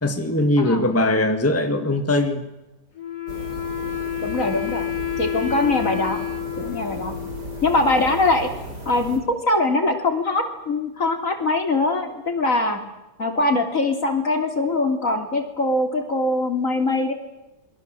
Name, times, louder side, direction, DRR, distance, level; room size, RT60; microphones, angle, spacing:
voice 1, 0.0-2.5, left 1 dB, 10° left, 6 dB, 1.8 m, -20 dB
voice 2, 0.6-0.9 4.2-4.9 5.2-6.2 6.6-7.2 7.6-8.5 8.9-12.8 13.2-17.1, left 2 dB, 50° left, 5 dB, 3.5 m, -22 dB
Wind instrument woodwind instrument, 3.0-8.5, left 10 dB, 65° left, 3.7 m, -30 dB
sound 1, 3.3-9.2, right 1 dB, 75° right, 5.1 m, -36 dB
28.5 x 22.5 x 7.7 m, 0.97 s
omnidirectional pair, 1.8 m